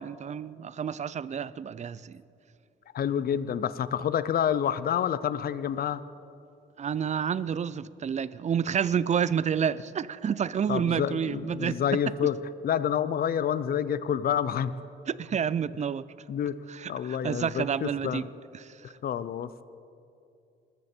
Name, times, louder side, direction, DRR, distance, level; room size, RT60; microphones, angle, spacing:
voice 1, 0.0-2.2 6.8-11.8 15.1-16.0 16.7-18.3 18.5-18.7, right 7 dB, 35° right, 0.5 m, -29 dB
voice 2, 2.9-6.0 10.7-12.4 12.6-14.7 16.3-16.6 16.9-18.3 19.0-19.5, left 9 dB, 50° left, 0.6 m, -28 dB
20.0 x 13.5 x 4.4 m
cardioid pair, 90°, 20 cm